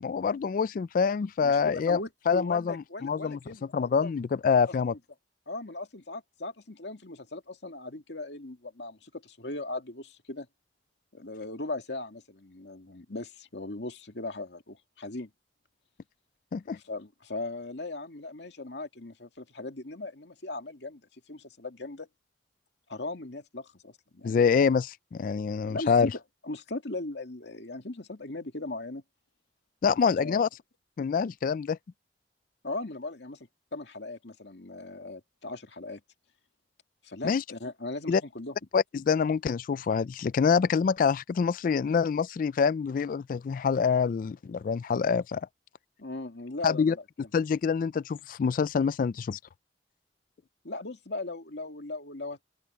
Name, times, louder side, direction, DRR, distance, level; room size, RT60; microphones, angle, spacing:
voice 1, 0.0-2.0 2.3-3.4 3.7-4.9 16.5-16.8 24.2-26.1 29.8-30.5 31.0-31.8 37.2-37.4 38.1-38.2 38.7-45.5 46.6-47.0 47.3-49.4, left 6 dB, 50° left, 0.3 m, -26 dB
voice 2, 1.4-3.7 4.0-4.1 4.9-5.0 5.5-10.5 11.1-15.3 16.8-21.0 21.3-22.1 22.9-24.4 25.7-29.0 30.1-30.4 32.6-36.0 37.0-38.6 46.0-47.3 50.6-52.4, left 2 dB, 75° left, 2.3 m, -38 dB
open air
head